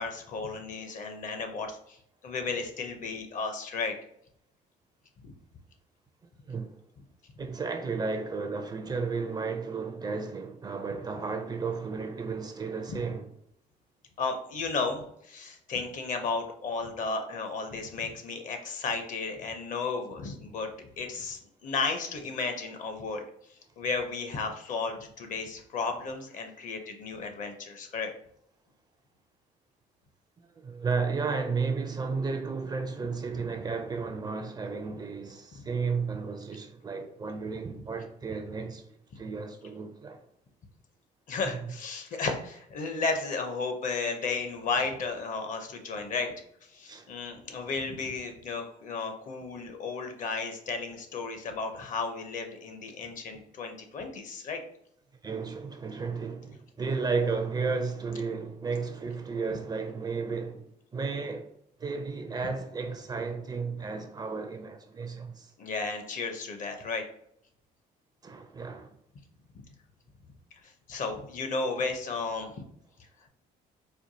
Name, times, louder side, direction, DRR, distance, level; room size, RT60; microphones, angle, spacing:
voice 1, 0.0-2.0 2.2-3.9 5.2-5.3 12.9-13.0 14.2-20.7 21.0-23.3 23.8-28.1 41.3-46.3 46.7-54.6 65.6-67.0 70.9-72.5, left 4 dB, 50° left, 0.7 m, -33 dB
voice 2, 6.4-6.8 7.4-13.3 30.4-38.9 39.2-40.2 41.6-41.8 46.8-47.1 55.2-61.5 61.8-65.5 68.2-68.9, right 4 dB, 25° right, 0.4 m, -33 dB
4.4 x 2.3 x 2.7 m
cardioid pair, 110°, 17 cm